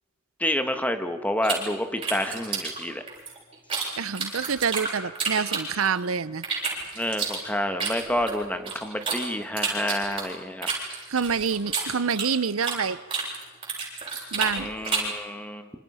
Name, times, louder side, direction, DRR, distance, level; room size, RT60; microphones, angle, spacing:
voice 1, 0.4-3.0 7.0-10.7 14.6-15.7, left 1 dB, 5° left, 7 dB, 1.5 m, -29 dB
sound 1, 1.4-3.9 4.1-6.0 6.4-9.2 9.6-12.8 13.1-15.2, right 5 dB, 25° right, 7.6 m, -30 dB
voice 2, 4.0-6.4 11.1-13.0 14.3-14.7, right 6 dB, 90° right, 17 dB, 0.7 m, -27 dB
27.0 x 26.0 x 5.7 m, 1.3 s
head